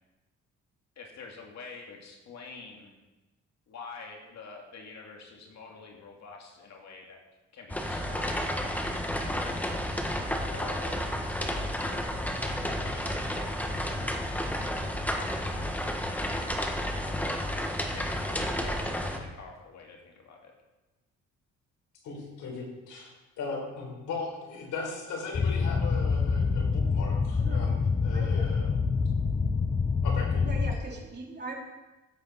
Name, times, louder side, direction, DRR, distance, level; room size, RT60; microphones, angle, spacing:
voice 1, 1.0-2.9 3.7-7.2 7.5-8.9 9.2-10.0 10.5-14.7 15.3-16.3 17.0-17.4 17.9-20.5, left 4 dB, 65° left, 0 dB, 2.1 m, -47 dB
sound 1, 7.7-19.2, equal, 5° left, 1.5 m, -31 dB
voice 2, 22.0-23.1 23.4-28.7 30.0-30.4, left 4 dB, 80° left, -1 dB, 4.3 m, -38 dB
sound 2, 25.3-30.7, left 5 dB, 20° left, 0.8 m, -26 dB
voice 3, 28.1-28.5 30.4-31.6, right 3 dB, 35° right, -2 dB, 3.3 m, -40 dB
15.0 x 8.2 x 4.2 m, 1.1 s
cardioid pair, 90°, 30 cm